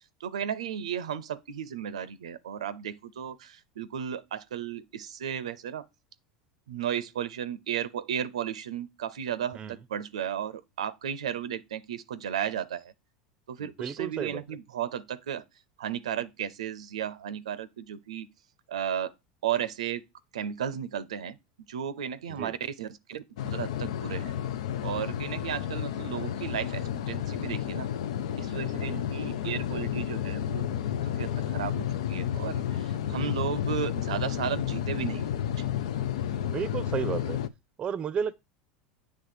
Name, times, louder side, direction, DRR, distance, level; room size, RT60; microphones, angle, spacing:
voice 1, 0.2-5.9 6.7-12.9 13.5-15.4 15.8-18.3 18.7-19.1 19.4-20.0 20.3-21.4 21.7-24.3 24.8-27.9 28.4-30.7 31.0-35.3 35.6-35.7, right 9 dB, 85° right, 0.6 m, -34 dB
voice 2, 13.6-14.4 22.3-22.5 28.8-29.1 33.1-33.3 36.5-37.4 37.8-38.4, right 7 dB, 30° right, 0.6 m, -33 dB
sound 1, 23.4-37.5, left 10 dB, 75° left, 0.5 m, -31 dB
8.1 x 3.4 x 6.6 m
hypercardioid pair, 95°, 3 cm